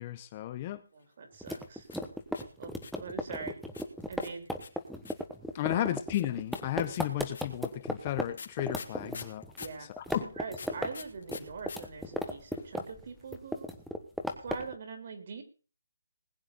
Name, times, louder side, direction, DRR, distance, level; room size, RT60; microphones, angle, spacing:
voice 1, 0.0-0.8 5.5-9.4 9.9-10.3, left 13 dB, 25° left, 13 dB, 0.7 m, -34 dB
voice 2, 0.9-1.9 2.6-3.6 4.1-4.5 5.7-5.9 9.0-9.3 9.6-13.7 14.4-15.4, right 5 dB, 40° right, 7 dB, 3.4 m, -43 dB
sound 1, 1.4-3.1 3.7-5.3 6.1-9.8 10.5-11.8 12.0-12.1 12.3-12.8, left 5 dB, 50° left, 3.1 m, -46 dB
sound 2, 1.4-8.3 8.6-9.7 10.0-10.9 11.2-13.0 13.3-14.7, equal, ahead, 1.2 m, -35 dB
20.0 x 9.0 x 4.0 m, 0.35 s
hypercardioid pair, 170°, 0 cm